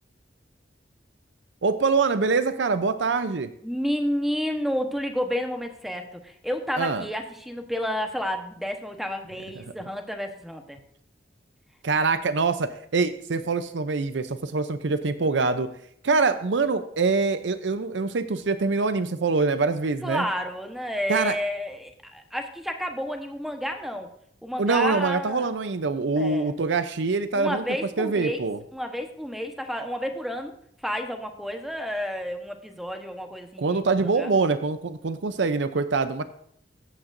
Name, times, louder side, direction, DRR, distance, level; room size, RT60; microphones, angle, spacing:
voice 1, 1.6-3.5 6.8-7.0 11.8-15.7 16.0-20.3 21.1-21.4 24.6-27.6 28.0-28.6 33.6-36.2, right 4 dB, 75° right, 11 dB, 0.6 m, -24 dB
voice 2, 3.6-10.8 20.0-24.1 24.4-25.5 26.2-26.5 27.3-28.4 28.7-30.5 30.8-34.3, equal, ahead, 4 dB, 1.1 m, -30 dB
14.0 x 8.8 x 2.6 m, 0.67 s
head